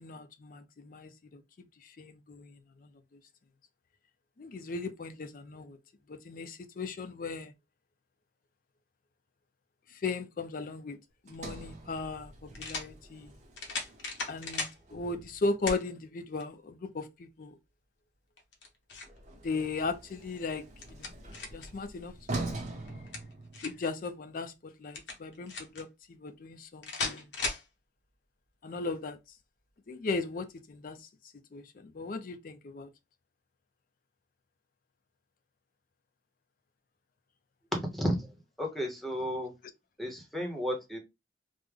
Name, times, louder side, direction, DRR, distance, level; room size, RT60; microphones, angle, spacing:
voice 1, 0.0-1.4 2.0-2.9 4.4-5.8 6.1-7.5 9.9-11.0 11.2-13.3 14.3-17.6 19.4-20.6 20.9-21.1 21.5-22.4 23.6-27.3 28.6-29.2 29.9-31.0 31.5-32.9, left 3 dB, 50° left, 0.4 m, -37 dB
sound 1, 11.3-11.4 12.5-12.9 13.6-14.8 15.7-15.8 16.4-16.5 18.4-19.2 20.5-21.7 22.9-23.9 24.9-25.8 26.8-27.7, left 3 dB, 75° left, 0.9 m, -37 dB
Sliding door, 11.3-15.5 19.0-24.0, right 2 dB, 40° right, 0.9 m, -43 dB
voice 2, 37.7-38.3 38.6-39.5 40.0-41.0, equal, ahead, 0.8 m, -32 dB
3.4 x 2.1 x 3.3 m
head